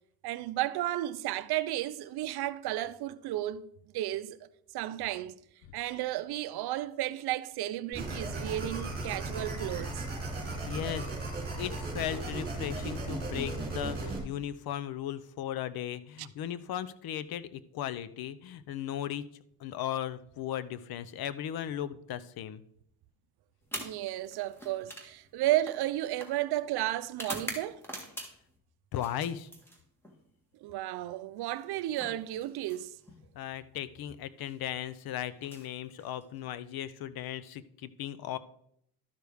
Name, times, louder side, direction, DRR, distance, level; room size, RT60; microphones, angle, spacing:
voice 1, 0.2-3.7 3.9-4.4 4.7-5.3 5.7-10.0 16.2-16.3 23.8-27.8 30.6-33.0, right 14 dB, 65° right, 0.6 m, -33 dB
sound 1, 7.9-14.2, right 2 dB, 20° right, 2.9 m, -36 dB
voice 2, 10.7-11.1 11.6-19.2 19.6-22.6 28.9-29.5 33.4-38.4, left 10 dB, 60° left, 0.7 m, -37 dB
sound 2, 23.6-28.6 28.9-30.2 31.4-33.2 34.3-34.6 35.3-36.5, right 1 dB, 5° left, 1.7 m, -45 dB
12.0 x 6.3 x 3.5 m
cardioid pair, 110°, 41 cm